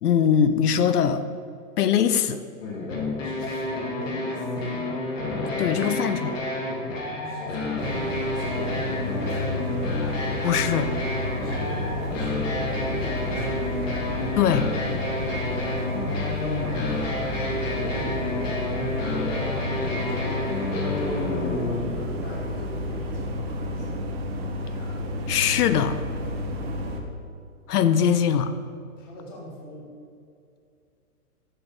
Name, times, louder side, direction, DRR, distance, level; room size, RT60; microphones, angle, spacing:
voice 1, 0.0-1.2 1.8-2.4 5.6-6.4 10.4-10.9 14.3-14.7 25.3-25.9 27.7-28.5, left 8 dB, 80° left, 11 dB, 0.6 m, -21 dB
sound 1, 2.6-21.8, left 2 dB, 55° left, 1.7 m, -29 dB
voice 2, 3.2-4.8 7.2-10.1 11.4-14.2 17.6-18.7 19.0-24.1 29.0-29.9, left 1 dB, 15° left, -3 dB, 0.4 m, -40 dB
sound 2, 7.8-27.0, left 1 dB, 40° right, 0.9 m, -31 dB
6.6 x 6.0 x 3.9 m, 2.4 s
hypercardioid pair, 140°, 45 cm